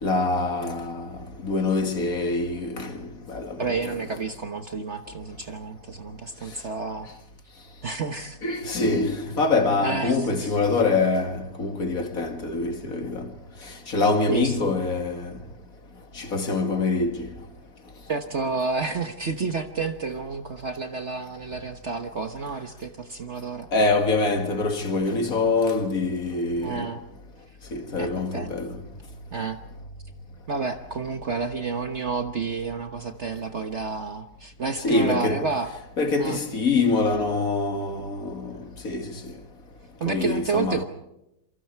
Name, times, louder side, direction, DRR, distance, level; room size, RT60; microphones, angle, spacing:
voice 1, 0.0-1.1 1.4-2.9 3.3-3.6 8.4-13.3 13.9-15.3 16.2-17.3 23.7-26.9 27.7-28.7 34.8-35.4 36.0-38.6 38.8-39.1 40.1-40.8, left 3 dB, 50° left, 2.3 m, -24 dB
voice 2, 3.6-7.1 7.8-8.4 9.8-10.6 14.3-14.6 18.1-23.7 26.6-27.0 28.0-28.6 29.3-29.6 30.5-35.7 36.2-36.4 40.0-40.8, right 4 dB, 45° right, 1.2 m, -30 dB
27.5 x 24.0 x 4.6 m
omnidirectional pair, 2.0 m